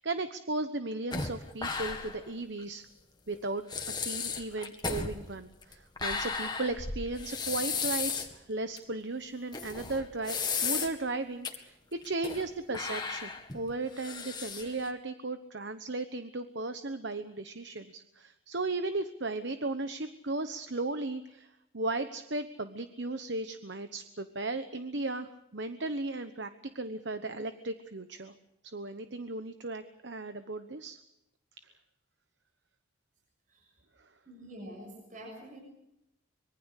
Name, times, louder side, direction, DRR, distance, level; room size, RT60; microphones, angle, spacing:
voice 1, 0.0-2.9 3.3-3.6 4.0-26.5 26.7-28.3 28.6-31.0 34.0-34.1, right 2 dB, 60° right, 9 dB, 1.1 m, -36 dB
sound 1, 1.1-2.3 2.6-2.7 3.3-3.4 3.7-8.3 8.8-8.9 9.5-11.1 11.4-11.5 12.0-12.5 12.7-14.9, left 5 dB, 20° left, 2.0 m, -35 dB
voice 2, 34.2-35.6, right 1 dB, 40° right, 1 dB, 6.9 m, -46 dB
25.0 x 23.0 x 6.6 m, 0.86 s
head